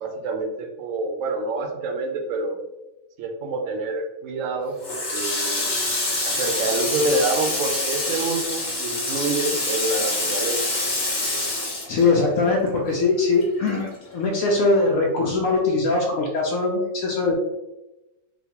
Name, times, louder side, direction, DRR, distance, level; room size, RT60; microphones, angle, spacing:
voice 1, 0.0-2.6 3.2-4.8 5.1-5.7 6.2-10.6, right 3 dB, 75° right, 4 dB, 1.0 m, -27 dB
Water tap faucet, 4.8-12.7 13.0-14.3, left 2 dB, 50° left, 1.2 m, -26 dB
voice 2, 11.9-17.3, left 3 dB, 70° left, -2 dB, 0.9 m, -21 dB
4.0 x 2.2 x 2.8 m, 1.0 s
omnidirectional pair, 1.5 m